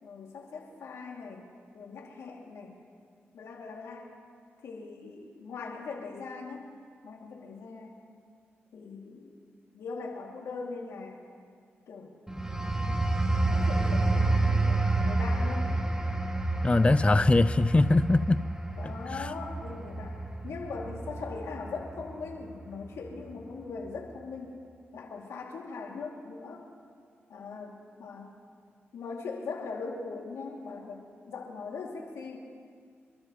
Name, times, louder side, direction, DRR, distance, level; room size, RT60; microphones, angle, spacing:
voice 1, 0.0-1.5 1.7-2.8 3.3-4.1 4.6-6.7 7.0-8.0 8.7-9.3 9.7-11.2 11.9-12.4 13.4-15.7 18.7-24.6 24.9-26.6 27.3-28.3 28.9-32.4, left 4 dB, 80° left, -1 dB, 2.5 m, -40 dB
sound 1, 12.3-22.6 23.1-23.3, right 2 dB, 10° right, 1.4 m, -29 dB
voice 2, 16.6-18.4 19.1-19.3, left 2 dB, 25° left, 14 dB, 0.4 m, -22 dB
27.5 x 12.5 x 3.1 m, 2.1 s
supercardioid pair, 45°, 5 cm